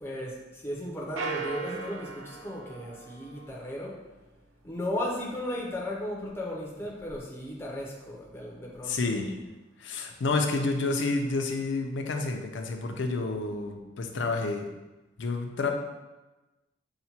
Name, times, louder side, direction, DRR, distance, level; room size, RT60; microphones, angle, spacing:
voice 1, 0.0-4.0 4.6-9.1, left 1 dB, 10° left, -3 dB, 0.5 m, -35 dB
sound 1, 1.2-3.9, right 4 dB, 75° right, 0.3 m, -38 dB
voice 2, 8.8-9.3 9.8-14.7 15.2-15.7, left 3 dB, 65° left, 5 dB, 0.4 m, -29 dB
5.7 x 2.1 x 2.8 m, 1.1 s
head